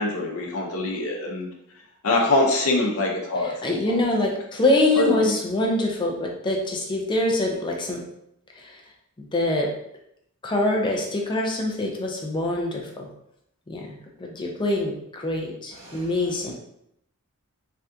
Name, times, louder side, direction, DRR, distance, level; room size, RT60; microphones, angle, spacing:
voice 1, 0.0-1.5 2.0-3.5 5.0-5.3, left 2 dB, 70° left, 0 dB, 0.7 m, -23 dB
voice 2, 3.4-8.0 8.6-8.8 9.2-9.7 10.4-13.1 13.7-16.5, left 1 dB, 20° left, 0 dB, 0.4 m, -25 dB
voice 3, 15.7-16.5, right 1 dB, 70° right, -8 dB, 1.4 m, -46 dB
3.4 x 2.4 x 2.7 m, 0.75 s
head